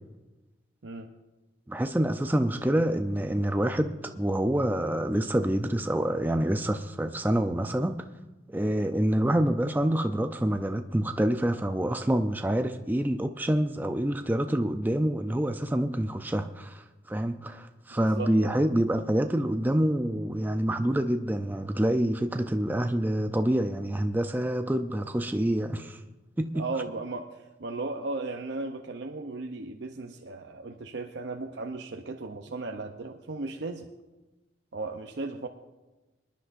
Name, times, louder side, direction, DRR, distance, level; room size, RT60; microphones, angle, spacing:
voice 1, 1.7-8.1 8.5-26.0 26.4-26.7, right 1 dB, 10° right, 0.4 m, -27 dB
voice 2, 18.0-18.6 26.5-33.9 34.7-35.5, right 3 dB, 70° right, 0.7 m, -36 dB
24.5 x 10.5 x 2.6 m
head